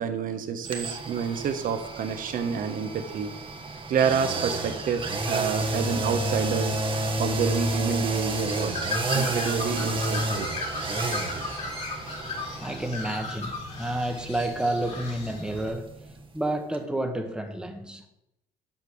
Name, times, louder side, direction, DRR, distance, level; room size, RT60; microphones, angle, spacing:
voice 1, 0.0-3.3 3.9-6.8 7.2-10.5, right 7 dB, 55° right, 8 dB, 1.1 m, -28 dB
sound 1, 0.6-16.5 16.7-16.8, right 2 dB, 30° right, 1.3 m, -31 dB
Bird, 8.3-15.7, left 3 dB, 40° left, 2.4 m, -35 dB
voice 2, 12.6-15.9 16.3-18.1, right 1 dB, 5° right, 4 dB, 1.3 m, -30 dB
7.5 x 5.2 x 6.3 m, 0.85 s
cardioid pair, 110°, 17 cm